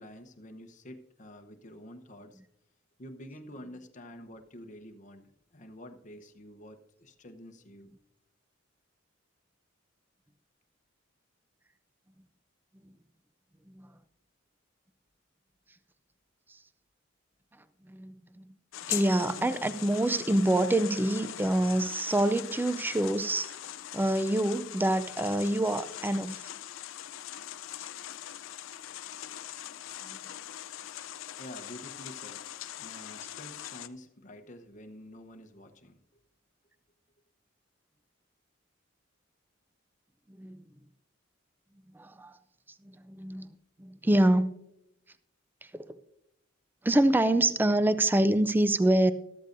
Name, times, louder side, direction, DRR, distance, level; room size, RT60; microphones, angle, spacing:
voice 1, 0.0-2.4 3.0-7.9 31.4-32.5 32.8-36.0, equal, 40° left, 6 dB, 0.9 m, -48 dB
voice 2, 17.9-18.5 18.9-23.6 23.9-26.5 27.8-27.9 30.0-30.2 40.4-40.6 41.9-42.4 42.8-43.5 43.8-44.5 45.7-45.8 46.8-49.1, right 1 dB, 10° right, 13 dB, 0.4 m, -26 dB
sound 1, 18.7-33.9, left 12 dB, 75° left, 0.4 m, -41 dB
13.5 x 13.0 x 2.6 m, 0.80 s
head